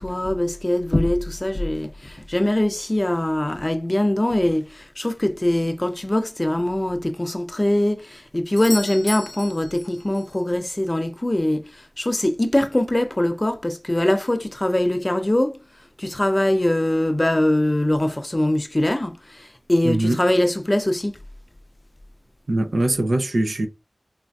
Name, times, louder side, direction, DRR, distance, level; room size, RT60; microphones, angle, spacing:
voice 1, 0.0-15.6 16.0-21.1, left 1 dB, 30° left, 0.4 m, -22 dB
Doorbell, 8.6-10.4 14.5-14.6, left 2 dB, 65° left, 0.7 m, -35 dB
voice 2, 19.8-20.2 22.5-23.7, right 1 dB, 85° right, 0.5 m, -21 dB
3.2 x 2.5 x 2.2 m
wide cardioid pair, 40°, 0 cm